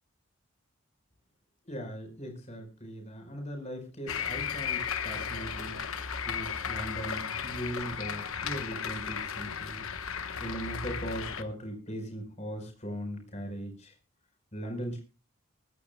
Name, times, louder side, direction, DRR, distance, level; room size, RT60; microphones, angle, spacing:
voice 1, 1.7-5.8 6.2-9.9 10.4-13.9 14.5-15.0, equal, 30° left, 4 dB, 4.8 m, -39 dB
sound 1, 4.1-11.4, left 7 dB, 75° left, 1.2 m, -35 dB
22.0 x 14.0 x 2.3 m, 0.31 s
head